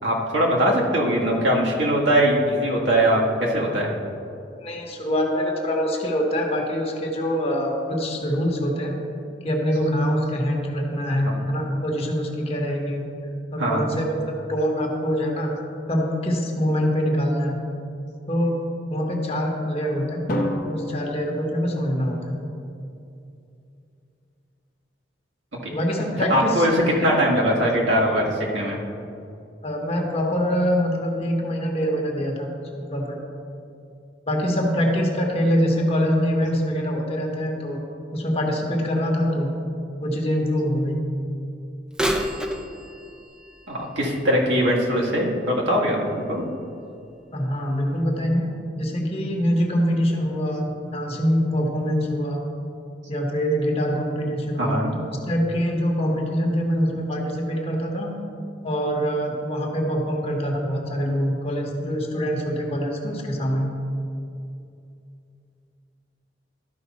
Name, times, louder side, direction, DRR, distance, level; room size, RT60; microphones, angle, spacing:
voice 1, 0.0-3.9 11.2-11.4 13.6-13.9 25.6-25.7 26.3-26.7 27.0-28.8 43.7-46.4 54.6-54.9, equal, 75° right, -3 dB, 1.6 m, -21 dB
voice 2, 4.6-9.0 9.4-13.1 13.5-15.5 15.9-17.5 18.3-20.3 20.7-22.4 25.7-27.0 29.6-32.5 32.8-33.2 34.3-37.8 38.1-39.5 40.0-41.0 47.3-48.5 48.8-52.4 53.1-54.9 55.2-58.1 58.6-63.7, equal, 35° left, 1 dB, 1.2 m, -24 dB
Drum, 20.3-22.4, equal, 50° left, 0.9 m, -30 dB
Bird vocalization bird call bird song / Telephone, 41.9-45.7 46.3-46.4 47.2-47.3 47.9-48.0, right 1 dB, 5° right, 0.5 m, -31 dB
12.5 x 5.3 x 4.1 m, 2.6 s
head